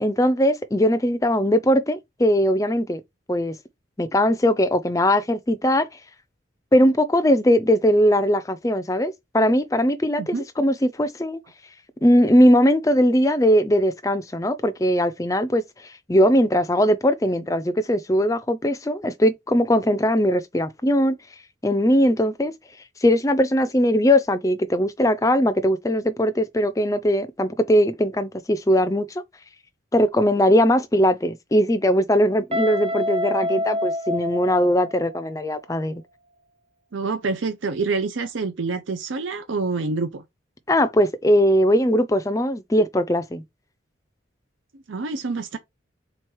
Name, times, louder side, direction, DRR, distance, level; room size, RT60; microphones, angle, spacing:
voice 1, 0.0-3.0 3.3-3.6 4.0-5.9 6.7-11.4 12.0-21.1 21.6-22.5 23.0-29.2 29.9-36.0 40.7-43.4, equal, 15° left, 0.4 m, -20 dB
Guitar, 32.5-35.3, left 1 dB, 30° right, 1.0 m, -27 dB
voice 2, 36.9-40.2 44.9-45.6, right 4 dB, 80° right, 0.6 m, -27 dB
3.8 x 3.1 x 4.6 m
head